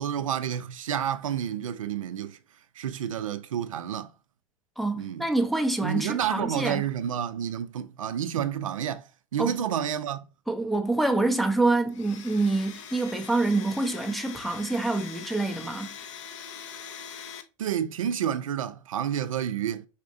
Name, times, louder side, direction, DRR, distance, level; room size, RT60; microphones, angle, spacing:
voice 1, 0.0-2.4 2.8-4.1 5.0-5.3 5.8-10.2 17.6-19.9, right 9 dB, 85° right, 0.4 m, -30 dB
voice 2, 4.8-6.8 9.4-9.5 10.5-15.9, right 2 dB, ahead, 0.4 m, -26 dB
Domestic sounds home sounds, 11.9-17.4, left 8 dB, 65° left, 0.6 m, -42 dB
4.1 x 2.5 x 2.5 m
hypercardioid pair, 100°, 17 cm